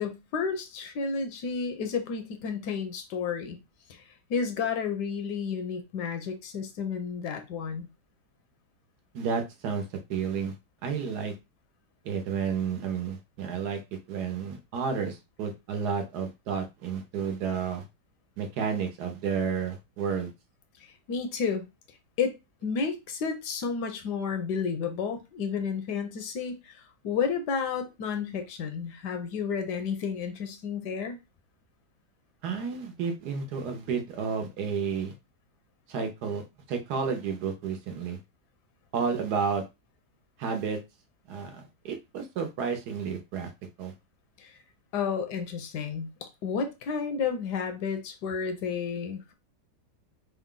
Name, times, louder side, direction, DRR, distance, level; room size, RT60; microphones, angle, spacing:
voice 1, 0.0-3.6 3.9-4.0 4.3-7.9 21.1-21.6 22.2-22.4 22.6-31.2 44.4-44.6 44.9-49.3, left 6 dB, 75° left, 1.3 m, -31 dB
voice 2, 9.1-10.5 10.8-11.3 12.0-17.8 18.4-20.3 32.4-35.1 35.9-38.2 38.9-39.6 40.4-40.8 41.3-43.5 43.8-43.9, right 6 dB, 70° right, 1.3 m, -31 dB
3.9 x 2.2 x 3.7 m
omnidirectional pair, 1.9 m